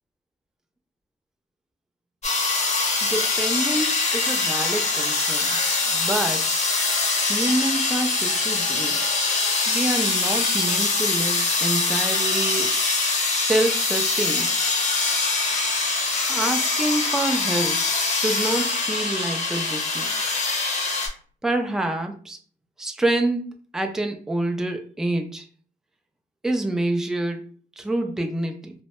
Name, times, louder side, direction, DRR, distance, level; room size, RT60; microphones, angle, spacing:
sound 1, 2.2-21.1, left 3 dB, 35° left, 0.7 m, -23 dB
voice 1, 3.1-5.6 5.9-6.6 7.3-9.2 9.7-12.8 13.4-14.5 16.3-17.8 18.1-20.1 21.4-22.4 22.8-23.5 23.7-25.4 26.4-28.7, right 2 dB, 5° right, 5 dB, 0.3 m, -27 dB
2.1 x 2.0 x 2.8 m, 0.42 s
cardioid pair, 90°, 20 cm